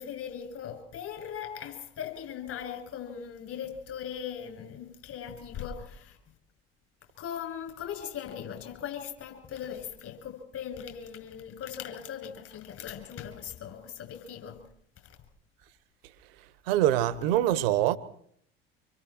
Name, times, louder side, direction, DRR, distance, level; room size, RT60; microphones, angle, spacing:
voice 1, 0.0-6.2 7.2-14.6 15.0-15.2, left 8 dB, 50° left, 7.7 m, -39 dB
voice 2, 16.7-18.0, right 13 dB, 65° right, 1.7 m, -24 dB
27.0 x 25.0 x 4.6 m
figure-of-eight pair, 65°, 30 cm